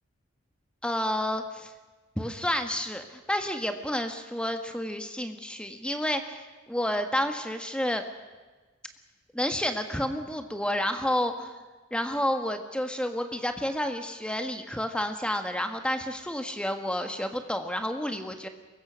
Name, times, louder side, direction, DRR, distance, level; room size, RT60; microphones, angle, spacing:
voice 1, 0.8-1.7 2.1-8.0 9.3-11.6 11.9-18.5, left 1 dB, 5° left, 6 dB, 1.5 m, -30 dB
24.5 x 22.0 x 6.4 m, 1.3 s
head